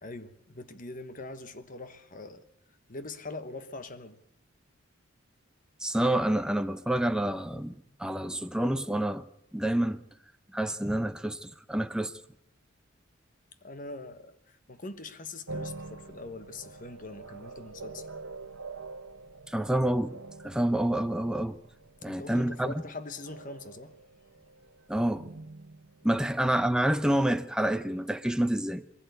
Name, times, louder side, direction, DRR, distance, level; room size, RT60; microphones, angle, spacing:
voice 1, 0.0-2.4 2.9-4.2 13.6-18.1 22.0-24.0 26.1-26.3, left 3 dB, 40° left, 1.2 m, -42 dB
voice 2, 5.8-9.3 9.5-10.0 10.5-12.1 19.5-20.2 20.4-21.6 22.0-22.8 24.9-25.3 26.0-28.8, right 1 dB, 5° right, 0.7 m, -28 dB
sound 1, 15.5-26.9, right 3 dB, 90° right, 1.1 m, -46 dB
22.0 x 16.0 x 8.1 m
head